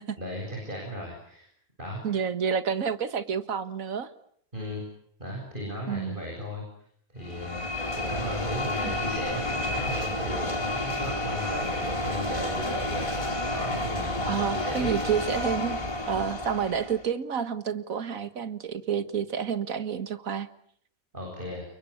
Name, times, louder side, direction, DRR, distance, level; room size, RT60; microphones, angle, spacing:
voice 1, 0.2-1.5 1.8-2.0 4.5-4.8 5.2-6.6 7.1-14.9 21.1-21.6, equal, 35° right, 0 dB, 8.1 m, -36 dB
voice 2, 2.0-4.1 5.9-6.2 8.8-8.9 14.3-15.8 16.1-20.5, right 7 dB, 70° right, 12 dB, 2.0 m, -29 dB
sound 1, 7.2-17.1, left 1 dB, 20° left, 4.1 m, -30 dB
29.0 x 23.5 x 8.7 m, 0.66 s
omnidirectional pair, 1.5 m